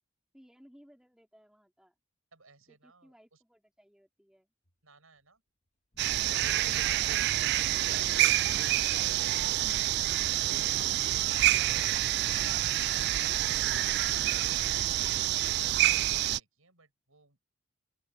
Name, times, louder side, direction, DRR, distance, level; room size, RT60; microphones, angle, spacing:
voice 1, 0.3-1.9 2.7-4.5, equal, 5° right, 3.7 m, -61 dB
voice 2, 2.3-3.4 4.8-5.4 13.2-17.5, right 3 dB, 85° right, 6.6 m, -61 dB
sound 1, 4.6-4.7 5.9-9.6, equal, 35° left, 2.2 m, -60 dB
sound 2, 6.0-16.4, right 14 dB, 50° right, 0.3 m, -27 dB
open air
head